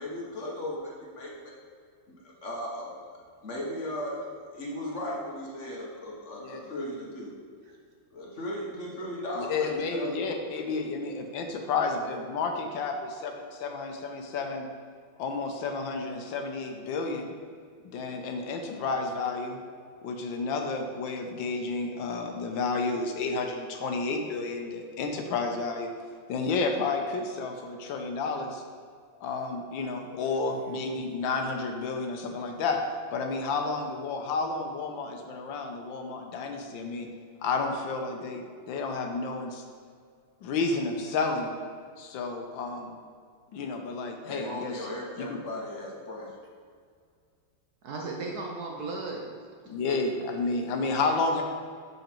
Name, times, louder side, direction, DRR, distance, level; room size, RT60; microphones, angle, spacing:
voice 1, 0.0-1.5 2.1-2.9 3.4-7.3 8.1-10.1 44.2-46.3, left 1 dB, 40° left, -3 dB, 1.3 m, -36 dB
voice 2, 9.4-14.7 15.2-17.3 17.8-19.6 20.0-25.9 26.3-28.6 29.2-32.8 33.1-37.1 37.4-39.6 40.4-41.5 42.0-43.0 43.5-44.9 45.2-45.4 49.7-51.4, left 3 dB, 80° left, 4 dB, 1.5 m, -31 dB
voice 3, 30.5-30.8 47.8-49.2, right 3 dB, 60° right, 0 dB, 1.2 m, -36 dB
7.1 x 5.5 x 4.4 m, 2.1 s
omnidirectional pair, 2.2 m